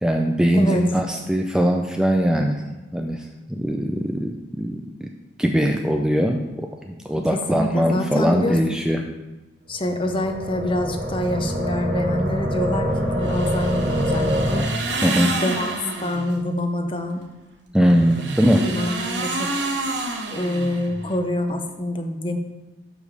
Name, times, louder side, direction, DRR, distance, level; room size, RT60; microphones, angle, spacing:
voice 1, 0.0-2.6 2.9-5.1 5.4-9.0 15.0-15.4 17.7-18.7, equal, 5° right, 2 dB, 0.3 m, -21 dB
voice 2, 0.5-0.8 7.1-7.2 7.5-8.8 9.7-14.7 15.4-15.7 16.0-17.2 18.6-19.5 20.3-22.4, left 1 dB, 30° left, 5 dB, 0.7 m, -26 dB
sound 1, 9.8-14.6, equal, 75° right, 1.4 m, -25 dB
sound 2, 13.2-16.4 17.8-21.2, right 2 dB, 90° right, 1.0 m, -28 dB
6.6 x 5.2 x 4.9 m, 1.1 s
head